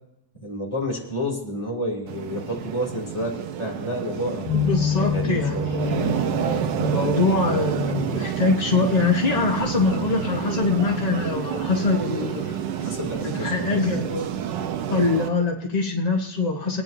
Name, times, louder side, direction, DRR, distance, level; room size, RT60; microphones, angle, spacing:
voice 1, 0.4-4.5 5.0-6.1 12.8-13.8, equal, 15° left, -3 dB, 2.4 m, -30 dB
sound 1, 2.1-15.3, right 9 dB, 70° right, 1.2 m, -29 dB
sound 2, 4.5-10.2, left 7 dB, 75° left, 1.6 m, -30 dB
voice 2, 4.6-12.5 13.2-14.3 14.9-16.8, left 3 dB, 55° left, 1 dB, 0.4 m, -24 dB
Gull seagull, 7.8-13.6, equal, 20° right, 6.0 m, -47 dB
23.0 x 9.3 x 2.6 m, 0.82 s
omnidirectional pair, 2.4 m